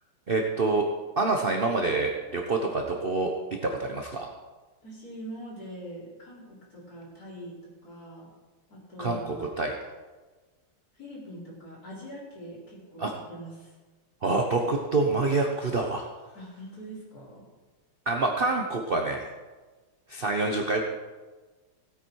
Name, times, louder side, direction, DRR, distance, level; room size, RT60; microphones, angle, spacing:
voice 1, 0.3-0.9 1.2-4.3 9.0-9.8 13.0-13.1 14.2-16.1 18.1-19.3 20.1-20.8, right 3 dB, 45° right, 2 dB, 0.7 m, -27 dB
voice 2, 4.8-8.3 8.7-9.5 10.9-13.7 16.3-17.4, equal, 40° left, -6 dB, 4.7 m, -43 dB
16.5 x 9.0 x 4.7 m, 1.3 s
omnidirectional pair, 2.4 m